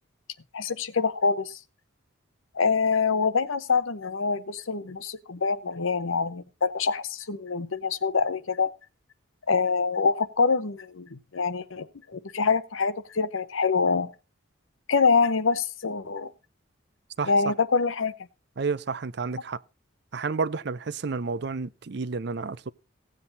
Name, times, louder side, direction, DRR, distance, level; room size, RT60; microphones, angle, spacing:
voice 1, 0.5-1.6 2.5-8.7 9.5-11.9 12.1-14.1 14.9-16.3 17.3-18.1, left 5 dB, 75° left, 0.9 m, -25 dB
voice 2, 18.6-19.6 20.1-22.7, right 4 dB, 55° right, 0.5 m, -30 dB
16.5 x 7.7 x 4.0 m
head